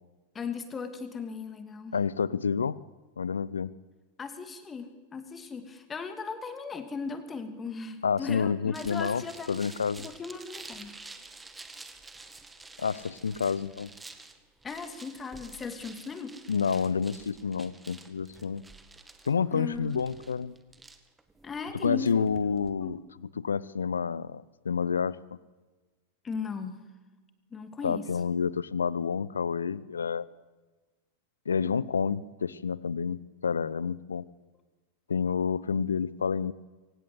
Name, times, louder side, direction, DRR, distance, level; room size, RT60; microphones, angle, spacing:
voice 1, 0.3-2.0 4.2-9.6 10.0-11.0 14.6-16.3 19.5-20.1 21.4-22.2 22.8-23.0 26.2-26.8 27.5-28.1, left 5 dB, 20° left, 9 dB, 2.7 m, -37 dB
voice 2, 1.9-2.8 3.2-3.7 8.0-10.1 12.8-13.9 16.5-18.6 19.3-20.5 21.8-25.2 27.8-30.3 31.5-34.2 35.1-36.5, left 6 dB, 70° left, 21 dB, 0.7 m, -29 dB
sound 1, 8.7-22.7, right 3 dB, 10° right, 2.0 m, -49 dB
24.0 x 19.0 x 8.1 m, 1.3 s
figure-of-eight pair, 90°, 0 cm